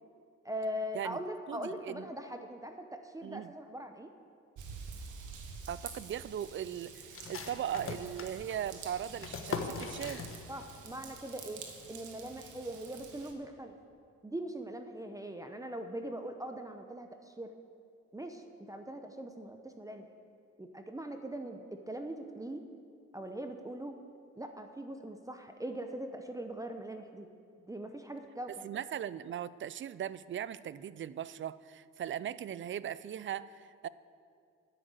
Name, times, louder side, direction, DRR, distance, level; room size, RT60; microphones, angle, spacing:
voice 1, 0.4-4.1 10.5-11.6 11.9-13.7 14.2-17.5 18.1-20.1 20.6-22.6 23.1-24.0 24.4-27.3 27.6-28.7, right 1 dB, 10° right, 6 dB, 0.8 m, -41 dB
voice 2, 1.5-2.1 3.2-3.5 5.7-10.2 28.6-33.9, right 10 dB, 40° right, 17 dB, 0.4 m, -39 dB
Raindrop / Vehicle horn car horn honking / Trickle dribble, 4.6-13.3, right 5 dB, 80° right, 1.5 m, -48 dB
sound 1, 7.1-10.8 11.0-11.1 11.6-12.0, left 5 dB, 45° left, 1.2 m, -41 dB
10.0 x 9.1 x 8.0 m, 2.4 s
cardioid pair, 90°, 30 cm